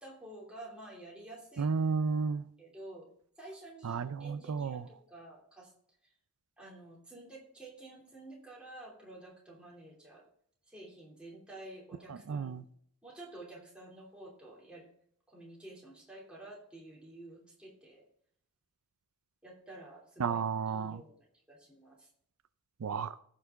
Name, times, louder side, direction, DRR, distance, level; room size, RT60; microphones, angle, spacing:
voice 1, 0.0-1.7 2.6-3.1 3.4-5.7 6.6-10.2 10.7-12.6 13.0-14.8 15.3-18.0 19.4-21.1 21.5-22.1, right 2 dB, 5° right, 2.9 m, -50 dB
voice 2, 1.6-2.4 3.8-4.9 12.1-12.6 20.2-21.0 22.8-23.1, right 5 dB, 85° right, 0.4 m, -32 dB
15.0 x 5.8 x 3.7 m
head